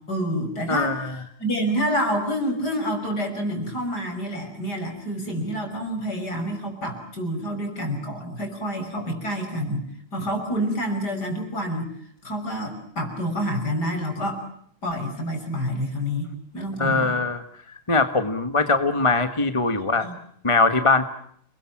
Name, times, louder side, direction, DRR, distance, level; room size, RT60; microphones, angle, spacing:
voice 1, 0.0-9.8 10.1-11.9 12.2-14.4 14.8-16.3 16.5-17.2 20.0-20.1, equal, 45° left, 4 dB, 6.6 m, -28 dB
voice 2, 0.7-1.1 16.8-17.4 17.9-20.1 20.4-21.1, left 3 dB, 15° left, 9 dB, 1.2 m, -21 dB
30.0 x 21.5 x 7.3 m, 0.64 s
omnidirectional pair, 2.4 m